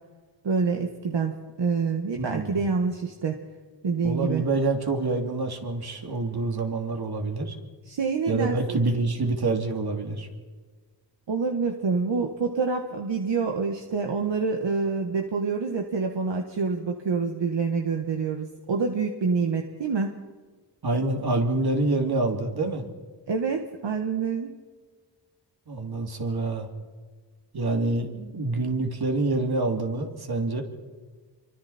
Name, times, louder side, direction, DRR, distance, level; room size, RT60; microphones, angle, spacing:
voice 1, 0.4-1.3 1.6-3.4 3.8-4.4 7.9-8.8 11.3-20.2 23.3-24.5, right 5 dB, 75° right, 3 dB, 1.8 m, -27 dB
voice 2, 2.1-2.6 4.0-7.6 8.3-10.3 20.8-22.8 25.7-26.7 27.5-30.6, right 2 dB, 60° right, 3 dB, 3.2 m, -26 dB
28.0 x 24.0 x 4.4 m, 1.4 s
wide cardioid pair, 90°, 44 cm